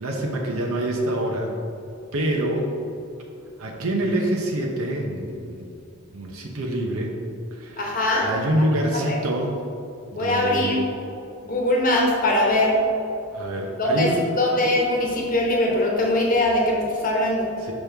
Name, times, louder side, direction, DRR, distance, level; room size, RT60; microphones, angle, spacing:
voice 1, 0.0-1.5 2.1-2.7 3.6-5.7 6.1-7.2 7.5-9.6 10.1-10.8 13.3-14.3 17.6-17.7, right 1 dB, 75° right, 0 dB, 0.7 m, -26 dB
voice 2, 7.8-8.3 9.0-9.2 10.1-10.8 11.4-12.8 13.8-14.1 14.4-17.5, left 1 dB, 40° left, -1 dB, 1.0 m, -21 dB
6.0 x 5.4 x 3.4 m, 2.7 s
head